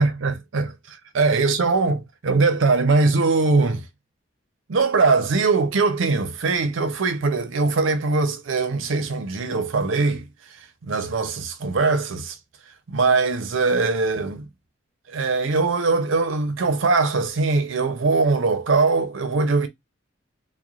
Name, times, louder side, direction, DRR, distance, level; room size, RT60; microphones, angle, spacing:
voice 1, 0.0-3.8 4.7-10.3 10.8-12.4 12.9-14.5 15.1-19.7, right 3 dB, 85° right, 0.5 m, -21 dB
3.0 x 2.1 x 2.4 m
head